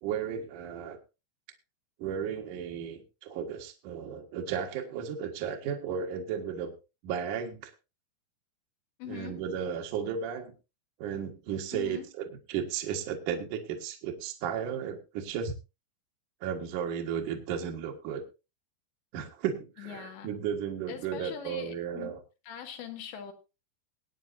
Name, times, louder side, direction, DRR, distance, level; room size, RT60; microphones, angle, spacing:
voice 1, 0.0-1.0 2.0-6.7 7.0-7.7 9.1-10.5 11.0-15.5 16.4-18.2 19.1-22.2, right 8 dB, 60° right, 2 dB, 2.5 m, -34 dB
voice 2, 9.0-9.4 11.7-12.1 19.8-20.3 20.9-22.2 22.5-23.3, left 9 dB, 80° left, 5 dB, 4.1 m, -42 dB
22.5 x 9.3 x 2.7 m, 0.29 s
omnidirectional pair, 5.0 m